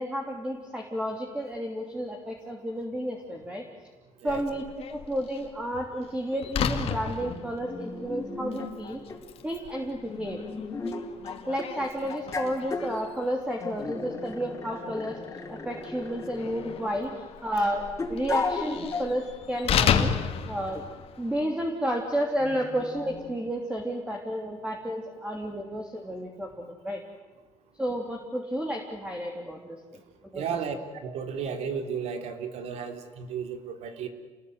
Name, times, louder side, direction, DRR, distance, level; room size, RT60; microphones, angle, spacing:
voice 1, 0.0-3.6 4.2-4.6 4.9-9.0 9.4-10.4 11.5-15.2 15.6-17.1 17.4-20.1 20.5-20.8 21.2-27.0 27.8-29.8 30.3-30.5, equal, 10° right, 2 dB, 3.2 m, -31 dB
Slam, 4.3-21.4, left 8 dB, 60° left, 2.4 m, -34 dB
sound 1, 6.3-6.4 7.2-8.7 9.1-9.2 10.1-11.7 12.1-12.9 13.6-17.1 18.0-19.1 19.7-19.8 20.7-20.9 22.4-23.4, left 4 dB, 25° left, 4.1 m, -36 dB
voice 2, 30.3-30.8 31.0-34.1, right 6 dB, 75° right, 7 dB, 3.3 m, -33 dB
28.5 x 20.5 x 9.6 m, 1.3 s
cardioid pair, 125°, 11 cm